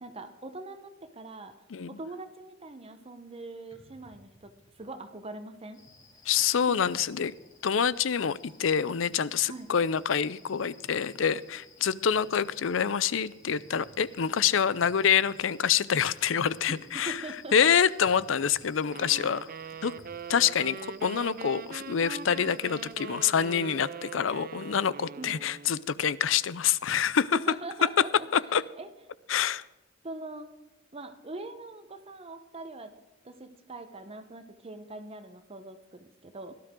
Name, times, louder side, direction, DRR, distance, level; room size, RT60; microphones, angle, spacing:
voice 1, 0.0-1.5 1.9-5.8 6.4-6.8 9.4-9.7 16.7-16.8 17.1-17.7 25.2-25.4 27.3-28.3 28.8-28.9 30.0-30.5 30.9-32.9 33.2-36.6, right 2 dB, 30° right, 8 dB, 1.0 m, -42 dB
sound 1, 3.7-4.9 5.9-6.0 6.8-7.4 8.0-8.1 8.5-8.6 8.9-9.2 9.7-11.5 11.8-12.6 13.4-13.9 14.5-15.3 16.3-17.1 18.1-18.6 19.0-20.8, equal, 40° left, 3.9 m, -58 dB
sound 2, 5.7-22.9, left 4 dB, 15° left, 4.4 m, -58 dB
voice 2, 6.3-7.4 7.6-17.2 17.5-19.5 19.8-19.9 20.3-27.4 28.3-28.6 29.3-29.6, left 7 dB, 80° left, 19 dB, 0.5 m, -26 dB
sound 3, 18.9-25.9, right 6 dB, 45° right, 0.6 m, -42 dB
18.0 x 12.5 x 3.7 m, 1.1 s
head